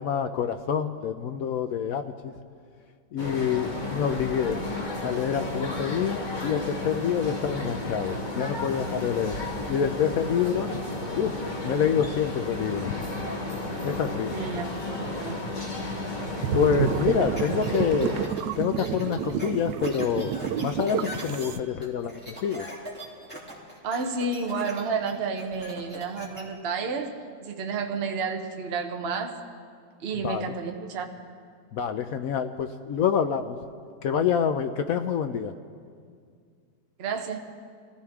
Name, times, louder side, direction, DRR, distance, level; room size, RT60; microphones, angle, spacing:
voice 1, 0.0-2.3 3.1-4.6 5.0-9.4 9.7-10.7 11.1-13.1 13.8-14.3 16.5-18.3 18.6-20.3 20.6-22.7 30.1-30.6 31.7-33.6 34.0-35.5, left 7 dB, 70° left, 8 dB, 0.8 m, -27 dB
sound 1, 3.2-18.3, left 2 dB, 25° left, 1.4 m, -33 dB
voice 2, 14.3-15.4 17.0-17.3 23.8-29.4 30.0-31.1 37.0-37.4, right 4 dB, 45° right, 4 dB, 0.9 m, -31 dB
sound 2, 16.4-21.6, right 9 dB, 75° right, 1.1 m, -29 dB
sound 3, 17.4-26.4, equal, 5° left, 2.9 m, -41 dB
24.0 x 15.5 x 3.6 m, 2.1 s
omnidirectional pair, 1.9 m